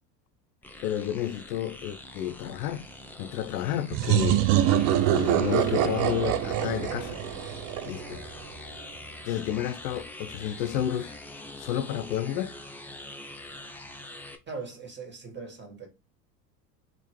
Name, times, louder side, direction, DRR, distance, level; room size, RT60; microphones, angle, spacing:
sound 1, 0.6-14.4, left 2 dB, 5° left, 0.6 m, -44 dB
voice 1, 0.8-2.8 3.2-4.5 5.1-7.2 7.9-8.2 9.2-11.2 11.6-12.5, left 11 dB, 70° left, 0.6 m, -31 dB
sound 2, 3.9-8.5, right 12 dB, 45° right, 0.5 m, -25 dB
voice 2, 14.5-15.9, right 4 dB, 20° right, 1.7 m, -40 dB
3.6 x 3.1 x 3.2 m
hypercardioid pair, 75°, 50 cm